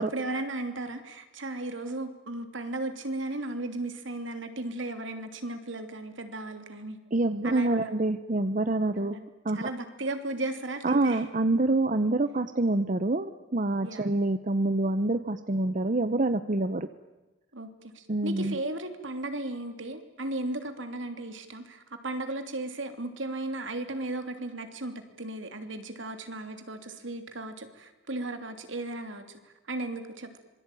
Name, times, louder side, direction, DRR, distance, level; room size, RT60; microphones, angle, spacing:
voice 1, 0.0-7.0 7.4-7.9 8.9-9.3 9.5-11.2 13.8-14.1 17.5-17.7 17.9-29.4 29.7-30.4, right 2 dB, 70° right, 7 dB, 3.1 m, -35 dB
voice 2, 7.1-9.2 9.4-9.7 10.8-16.9 18.1-18.6, right 2 dB, 40° right, 11 dB, 0.9 m, -26 dB
26.5 x 23.0 x 9.2 m, 1.1 s
head